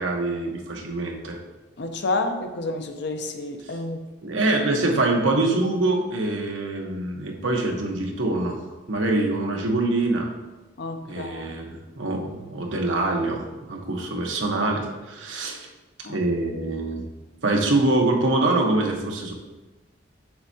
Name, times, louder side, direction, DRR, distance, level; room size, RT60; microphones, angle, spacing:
voice 1, 0.0-1.4 4.2-8.6 8.9-10.3 11.0-15.7 16.1-17.1 17.4-19.3, right 2 dB, 85° right, 1 dB, 1.1 m, -24 dB
voice 2, 1.8-4.0 10.8-11.5 16.0-16.2, left 2 dB, 60° left, 6 dB, 0.7 m, -29 dB
7.9 x 6.2 x 2.8 m, 1.1 s
head